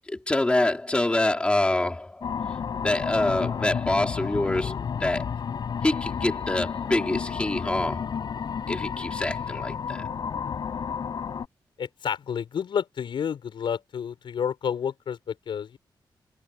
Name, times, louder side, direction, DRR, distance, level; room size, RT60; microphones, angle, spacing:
voice 1, 0.1-2.3 2.8-5.3 5.8-8.1 8.7-10.0, left 2 dB, 15° left, 4.4 m, -26 dB
sound 1, 2.2-11.5, left 7 dB, 60° left, 5.6 m, -31 dB
voice 2, 11.8-15.8, left 8 dB, 75° left, 6.9 m, -30 dB
wide cardioid pair, 165°, 8 cm